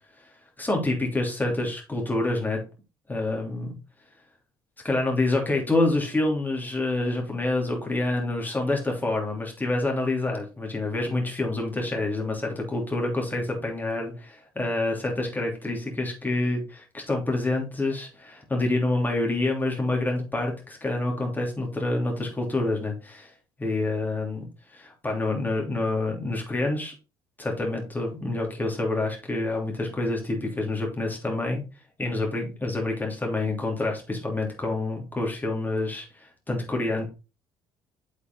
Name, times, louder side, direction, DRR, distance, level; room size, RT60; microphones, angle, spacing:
voice 1, 0.6-2.6 3.1-3.7 4.8-23.3 23.6-24.4 24.7-26.9 27.4-31.6 32.0-37.0, left 2 dB, 15° left, 0 dB, 3.2 m, -27 dB
7.9 x 5.3 x 3.9 m, 0.31 s
figure-of-eight pair, 50°, 12 cm